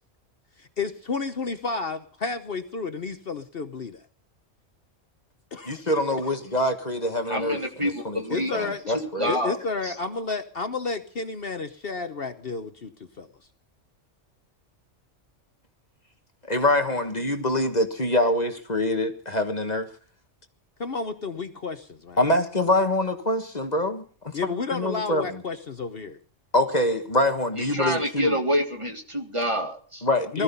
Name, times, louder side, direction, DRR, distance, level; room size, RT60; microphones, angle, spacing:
voice 1, 0.6-4.0 5.5-5.8 6.2-6.3 8.3-8.8 9.3-13.3 20.8-22.2 24.3-26.2 30.3-30.4, left 4 dB, 50° left, 1.2 m, -31 dB
voice 2, 5.7-9.3 16.5-19.9 22.2-24.4 24.7-25.4 26.5-28.3 30.0-30.4, left 1 dB, 35° left, 1.6 m, -25 dB
voice 3, 7.3-9.6 9.8-9.9 27.6-29.7, equal, 25° right, 1.9 m, -27 dB
20.0 x 13.5 x 5.4 m
omnidirectional pair, 1.3 m